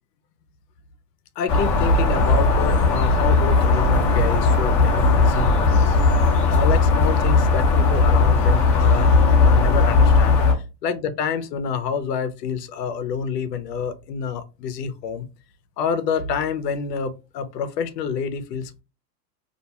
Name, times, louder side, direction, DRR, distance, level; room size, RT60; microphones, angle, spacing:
voice 1, 1.4-6.0 6.4-15.3 15.8-18.8, left 6 dB, 75° left, 0.7 m, -28 dB
sound 1, 1.5-10.5, left 3 dB, 30° left, 0.7 m, -17 dB
2.5 x 2.2 x 2.8 m
hypercardioid pair, 130°, 49 cm